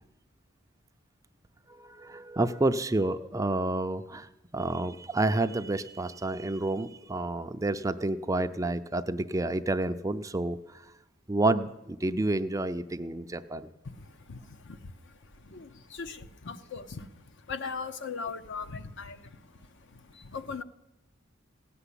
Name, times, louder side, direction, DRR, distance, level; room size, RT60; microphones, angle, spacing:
voice 1, 1.7-10.8 11.3-13.7, right 2 dB, 15° right, 9 dB, 0.5 m, -29 dB
voice 2, 13.8-15.1 15.5-19.4 19.9-20.6, left 5 dB, 60° left, 10 dB, 0.8 m, -40 dB
16.5 x 6.9 x 10.0 m, 0.92 s
head